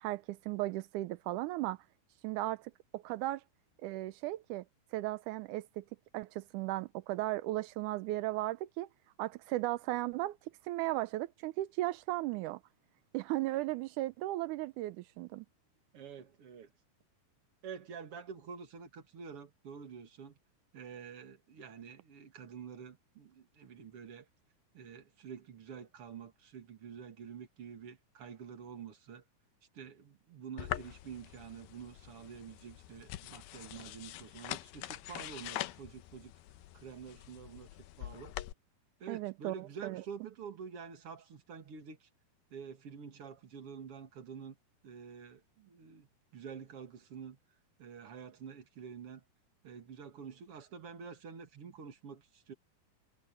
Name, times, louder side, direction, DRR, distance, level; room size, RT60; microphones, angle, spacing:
voice 1, 0.0-1.8 2.2-3.4 3.8-4.6 4.9-5.9 6.1-8.9 9.2-10.4 10.6-12.6 13.1-15.5 39.1-40.0, right 17 dB, 85° right, 1.8 m, -36 dB
voice 2, 15.9-16.7 17.6-20.4 20.7-24.3 24.7-29.2 29.7-36.3 36.7-38.4 39.0-42.1 42.5-44.6 44.8-47.4 47.8-49.2 49.6-52.5, right 6 dB, 45° right, 2.7 m, -48 dB
sound 1, 30.6-38.5, left 15 dB, 90° left, 2.6 m, -44 dB
omnidirectional pair, 4.3 m